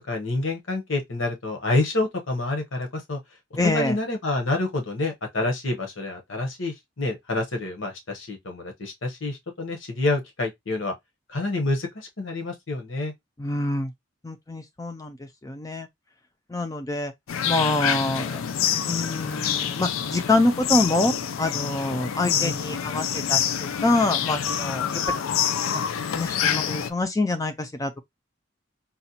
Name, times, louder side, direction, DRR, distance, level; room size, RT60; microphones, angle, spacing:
voice 1, 0.1-3.2 3.6-10.9 11.3-13.1 22.2-22.5, left 2 dB, 70° left, 0.9 m, -28 dB
voice 2, 3.6-4.0 13.4-13.9 14.2-15.9 16.5-17.1 17.5-18.4 18.8-25.0 25.7-25.8 26.1-28.0, left 2 dB, 15° left, 0.4 m, -26 dB
sound 1, 17.3-26.9, left 8 dB, 85° left, 0.4 m, -27 dB
4.0 x 2.2 x 2.8 m
head